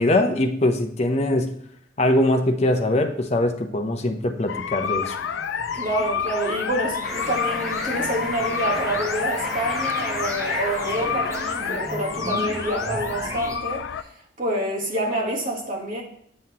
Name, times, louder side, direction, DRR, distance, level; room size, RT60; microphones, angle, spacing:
voice 1, 0.0-1.6 2.0-5.1, left 1 dB, 35° left, 5 dB, 0.6 m, -22 dB
sound 1, 4.5-14.0, left 7 dB, 70° left, 0.4 m, -29 dB
sound 2, 4.6-13.6, right 1 dB, 15° right, 0.9 m, -36 dB
voice 2, 5.7-14.1 14.4-16.0, right 1 dB, 45° right, 0 dB, 1.3 m, -27 dB
sound 3, 7.0-12.1, left 1 dB, ahead, 1.2 m, -34 dB
7.7 x 5.6 x 2.8 m, 0.69 s
head